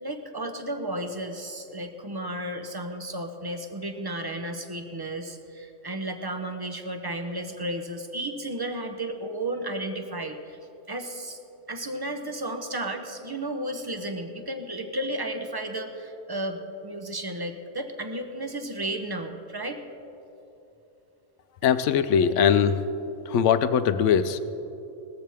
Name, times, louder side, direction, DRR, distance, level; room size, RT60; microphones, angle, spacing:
voice 1, 0.0-10.6 10.9-11.4 11.7-19.8, right 1 dB, 25° right, 5 dB, 0.6 m, -33 dB
voice 2, 21.6-22.8 23.3-24.4, left 7 dB, 70° left, 12 dB, 0.9 m, -21 dB
18.0 x 14.0 x 3.5 m, 3.0 s
omnidirectional pair, 1.4 m